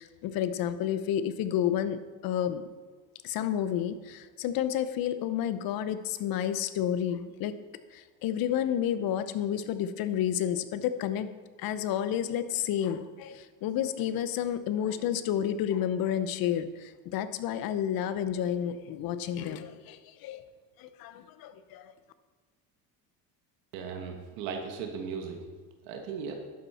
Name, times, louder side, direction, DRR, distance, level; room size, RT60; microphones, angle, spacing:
voice 1, 0.0-2.7 3.2-7.6 7.9-11.3 11.6-20.4 20.8-21.9, left 10 dB, 65° left, 12 dB, 0.9 m, -30 dB
voice 2, 23.7-25.4 25.8-26.3, right 6 dB, 90° right, 3 dB, 1.5 m, -37 dB
11.5 x 8.6 x 4.3 m, 1.4 s
supercardioid pair, 105°, 38 cm